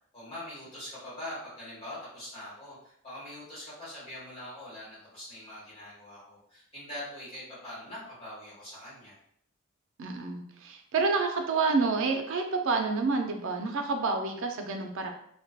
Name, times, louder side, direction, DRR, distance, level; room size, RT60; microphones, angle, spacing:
voice 1, 0.1-9.1, left 1 dB, 30° left, -9 dB, 1.3 m, -43 dB
voice 2, 10.0-15.1, right 4 dB, 60° right, 4 dB, 0.4 m, -28 dB
2.6 x 2.1 x 2.3 m, 0.67 s
head